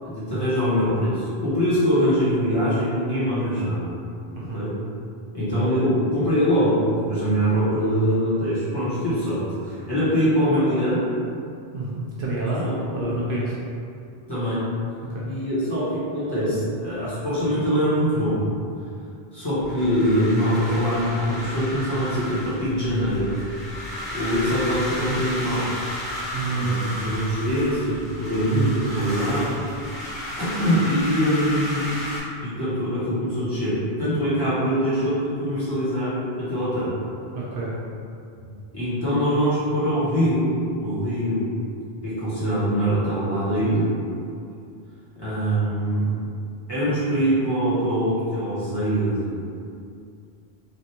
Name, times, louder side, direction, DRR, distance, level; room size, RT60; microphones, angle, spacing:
voice 1, 0.0-3.9 4.5-4.8 5.3-11.0 12.6-13.2 14.3-14.7 15.2-18.4 19.3-23.4 24.1-25.7 26.5-29.6 30.4-31.9 32.4-36.9 38.7-40.5 40.8-41.5 42.0-43.9 45.2-46.1 46.7-49.4, equal, 25° left, -13 dB, 1.2 m, -23 dB
voice 2, 4.3-4.7 11.7-12.7 12.9-13.5 15.1-15.2 26.3-27.0 37.3-37.7, right 3 dB, 65° right, -6 dB, 0.7 m, -28 dB
sound 1, 19.6-32.2, left 1 dB, ahead, 1.1 m, -33 dB
3.4 x 2.5 x 2.8 m, 2.4 s
omnidirectional pair, 1.0 m